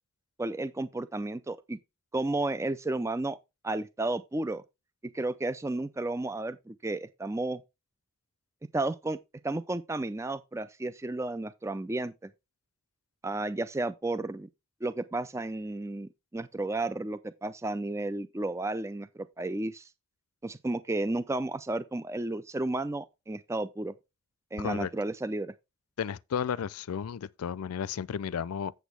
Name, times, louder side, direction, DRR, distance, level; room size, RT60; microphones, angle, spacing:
voice 1, 0.4-1.8 2.1-3.4 3.6-4.6 5.1-7.6 8.7-9.2 9.4-12.3 13.2-14.5 14.8-19.9 20.4-23.9 24.5-25.5, right 2 dB, 15° right, 0.4 m, -32 dB
voice 2, 24.6-24.9 26.0-28.7, left 7 dB, 85° left, 0.4 m, -33 dB
8.2 x 7.9 x 3.3 m
head